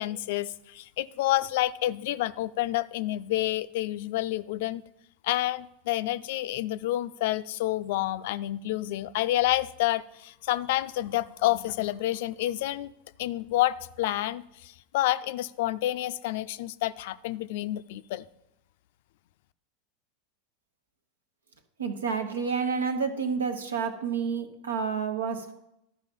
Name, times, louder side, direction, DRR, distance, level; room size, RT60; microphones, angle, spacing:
voice 1, 0.0-4.8 5.2-12.9 13.2-18.2, left 15 dB, 65° left, 15 dB, 0.4 m, -29 dB
voice 2, 21.8-25.5, right 6 dB, 85° right, 7 dB, 1.0 m, -29 dB
12.0 x 4.9 x 5.3 m, 0.84 s
hypercardioid pair, 90°, 0 cm